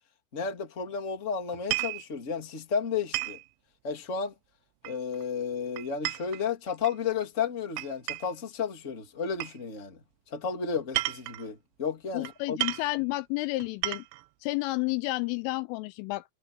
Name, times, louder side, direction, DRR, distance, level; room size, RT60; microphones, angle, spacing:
voice 1, 0.3-3.4 3.8-4.3 4.8-10.0 10.3-12.6, left 6 dB, 20° left, 2.0 m, -32 dB
sound 1, 1.5-2.1 3.1-3.5 4.9-5.2 5.8-7.0 7.8-8.4 9.4-9.6 10.8-11.5 12.3-12.4 12.6-12.9 13.6-14.3, right 19 dB, 85° right, 2.7 m, -33 dB
voice 2, 12.1-14.0 14.4-16.2, left 20 dB, 85° left, 3.1 m, -31 dB
omnidirectional pair, 5.9 m